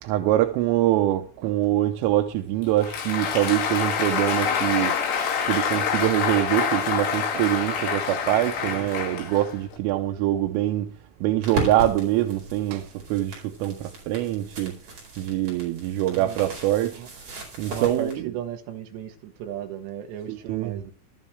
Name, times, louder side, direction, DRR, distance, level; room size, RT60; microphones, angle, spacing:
voice 1, 0.0-4.9 5.4-14.8 15.2-17.0 17.6-18.2 20.3-20.8, right 14 dB, 85° right, 3.5 m, -24 dB
Applause, 2.6-9.7, left 7 dB, 65° left, 4.4 m, -26 dB
sound 1, 11.4-18.2, right 2 dB, 35° right, 5.5 m, -36 dB
voice 2, 16.1-16.5 16.9-17.1 17.7-20.9, right 10 dB, 70° right, 3.2 m, -35 dB
14.5 x 13.0 x 3.3 m
omnidirectional pair, 5.7 m